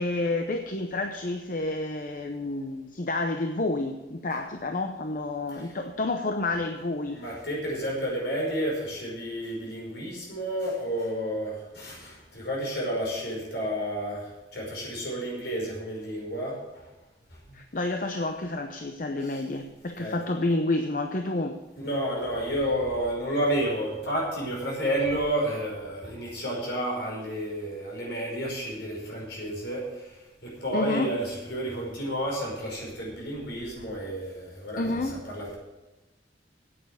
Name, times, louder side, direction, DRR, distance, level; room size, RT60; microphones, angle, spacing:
voice 1, 0.0-7.2 17.5-21.6 30.7-31.1 34.8-35.2, left 2 dB, 50° left, 5 dB, 0.7 m, -29 dB
voice 2, 7.1-16.6 19.2-19.4 20.0-20.2 21.8-35.6, right 1 dB, 70° left, -2 dB, 5.4 m, -31 dB
9.1 x 8.7 x 8.3 m, 1.1 s
head